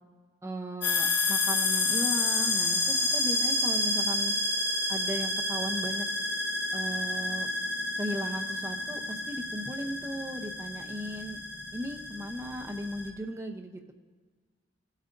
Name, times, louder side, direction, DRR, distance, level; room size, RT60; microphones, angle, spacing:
voice 1, 0.4-4.3 4.9-6.1 6.7-7.5 8.0-11.4 11.7-13.9, equal, 15° right, 3 dB, 0.7 m, -36 dB
sound 1, 0.8-13.1, left 2 dB, 55° left, 1.2 m, -30 dB
15.5 x 8.2 x 2.6 m, 1.4 s
head